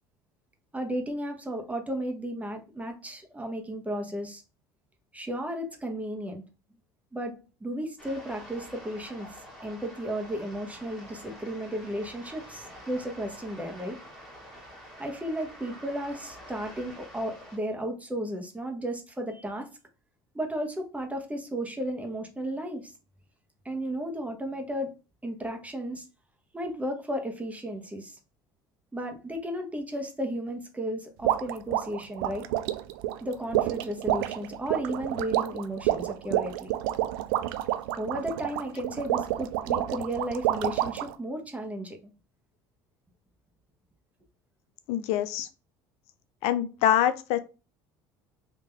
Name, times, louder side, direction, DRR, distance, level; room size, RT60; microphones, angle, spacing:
voice 1, 0.7-4.4 5.1-6.4 7.1-9.3 9.6-14.0 15.0-19.7 20.3-22.9 23.6-24.9 25.2-26.1 26.5-28.2 28.9-32.5 33.2-36.7 38.0-42.0, right 1 dB, 10° right, 1.0 m, -34 dB
sound 1, 8.0-17.6, equal, 5° left, 1.5 m, -47 dB
sound 2, 31.2-41.1, right 14 dB, 80° right, 0.4 m, -29 dB
voice 2, 44.9-45.5 46.4-47.4, left 11 dB, 70° left, 0.5 m, -25 dB
3.7 x 2.7 x 3.3 m
hypercardioid pair, 75°, 11 cm